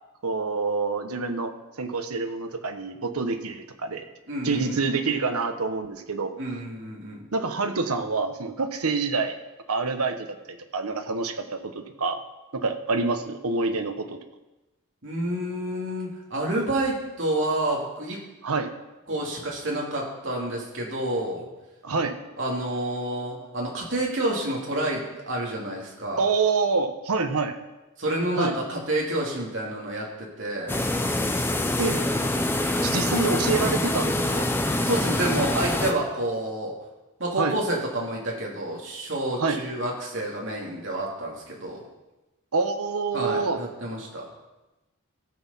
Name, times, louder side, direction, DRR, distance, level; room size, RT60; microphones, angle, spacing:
voice 1, 0.2-4.0 4.4-6.3 7.3-9.3 9.7-10.3 10.7-12.2 12.5-14.2 18.4-18.7 21.8-22.1 26.2-27.5 28.3-28.5 31.8-32.1 32.8-34.5 37.4-37.6 39.4-39.6 42.5-43.6, right 4 dB, 85° right, 7 dB, 1.0 m, -27 dB
voice 2, 4.3-4.8 6.4-7.2 15.0-18.2 19.1-21.5 22.4-26.3 28.0-30.8 34.8-36.7 37.2-41.8 43.1-44.3, right 1 dB, 55° right, -2 dB, 2.9 m, -29 dB
sound 1, 30.7-35.9, left 1 dB, 10° left, 0.6 m, -25 dB
16.5 x 6.4 x 5.6 m, 1.0 s
head